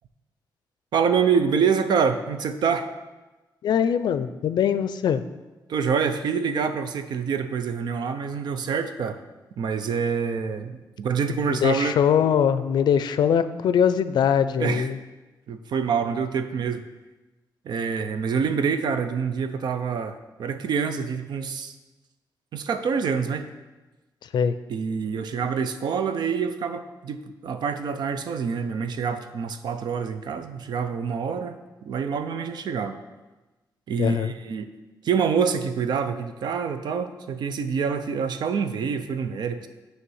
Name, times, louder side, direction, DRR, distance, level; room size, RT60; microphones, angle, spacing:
voice 1, 0.9-2.9 5.7-9.2 9.6-11.9 14.6-14.9 15.5-16.8 17.6-21.7 22.5-23.5 24.7-33.0 33.9-34.7 35.0-39.7, right 6 dB, 75° right, 9 dB, 0.5 m, -26 dB
voice 2, 3.6-5.2 11.5-15.0 24.2-24.5 34.0-34.3, left 8 dB, 75° left, 12 dB, 0.4 m, -22 dB
9.5 x 3.2 x 6.3 m, 1.1 s
wide cardioid pair, 165°, 7 cm